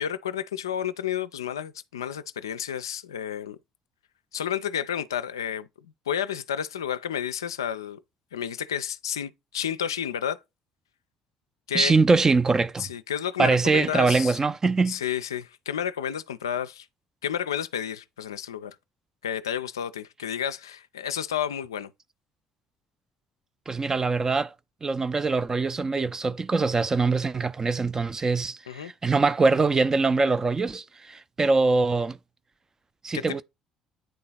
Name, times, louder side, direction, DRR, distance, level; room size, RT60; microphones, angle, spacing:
voice 1, 0.0-3.6 4.3-5.7 6.1-8.0 8.3-10.4 11.7-11.9 12.8-14.4 14.9-16.9 17.2-18.8 19.2-21.9 28.7-28.9 33.1-33.4, left 9 dB, 75° left, 0.4 m, -31 dB
voice 2, 11.7-12.9 13.4-15.0 23.7-24.5 24.8-32.2 33.0-33.4, right 3 dB, 25° right, 0.5 m, -23 dB
9.2 x 3.7 x 4.0 m
figure-of-eight pair, 50°, 2 cm